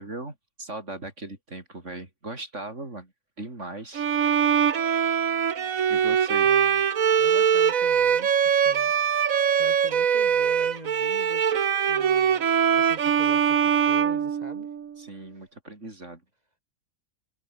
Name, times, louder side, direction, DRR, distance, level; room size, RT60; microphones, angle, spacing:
voice 1, 0.0-3.1 3.4-4.4 5.9-6.5 15.0-16.2, right 2 dB, 60° right, 5.2 m, -38 dB
Bowed string instrument, 3.9-14.9, right 8 dB, 85° right, 1.6 m, -22 dB
voice 2, 6.4-6.9 7.2-8.9 9.6-11.5 11.9-14.7, right 1 dB, 30° right, 5.2 m, -44 dB
omnidirectional pair, 1.4 m